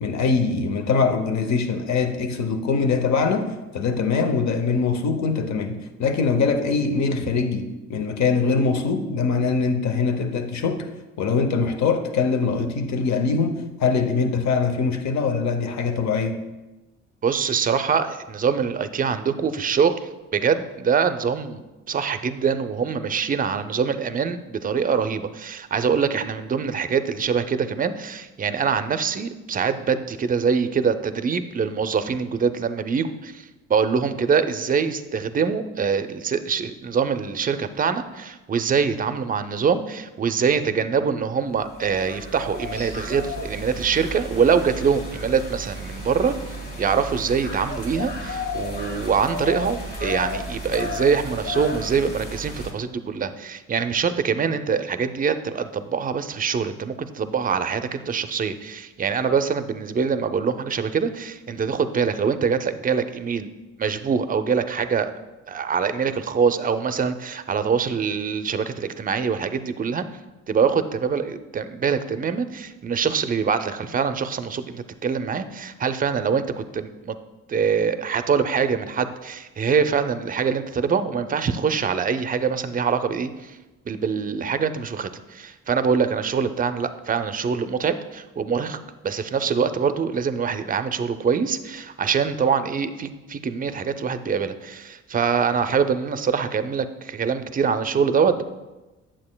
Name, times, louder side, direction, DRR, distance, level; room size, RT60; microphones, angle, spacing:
voice 1, 0.0-10.9 11.2-16.4, left 4 dB, 65° left, 8 dB, 0.8 m, -23 dB
voice 2, 17.2-20.0 20.3-21.6 21.9-33.4 33.7-46.3 46.8-63.5 63.8-65.1 65.5-70.1 70.5-77.2 77.5-83.5 83.9-88.8 89.0-98.4, right 6 dB, 30° right, 10 dB, 0.4 m, -24 dB
sound 1, 41.5-52.7, left 1 dB, 30° left, 1.5 m, -33 dB
8.6 x 7.4 x 2.2 m, 1.1 s
cardioid pair, 90°, 30 cm